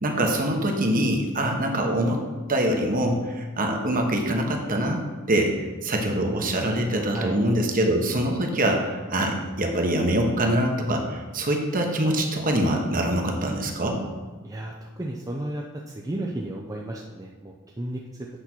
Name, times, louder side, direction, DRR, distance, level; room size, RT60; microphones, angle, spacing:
voice 1, 0.0-2.2 2.5-5.0 5.3-14.0, right 1 dB, 40° right, 2 dB, 1.2 m, -24 dB
voice 2, 14.4-18.3, right 1 dB, 15° right, -1 dB, 0.5 m, -33 dB
8.3 x 4.3 x 6.1 m, 1.3 s
head